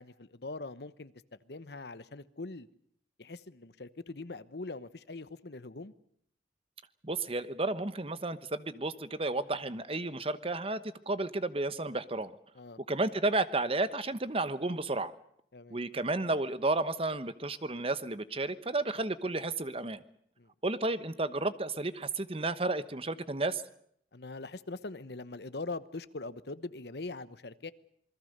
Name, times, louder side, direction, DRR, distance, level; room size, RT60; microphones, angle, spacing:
voice 1, 0.0-2.7 3.2-5.9 12.5-12.8 15.5-15.8 20.4-20.5 24.1-27.7, left 3 dB, 65° left, 14 dB, 1.0 m, -42 dB
voice 2, 7.0-10.8 11.1-12.4 12.9-15.1 15.7-20.0 20.6-23.6, right 2 dB, 35° right, 13 dB, 1.1 m, -32 dB
27.5 x 21.0 x 6.7 m, 0.67 s
head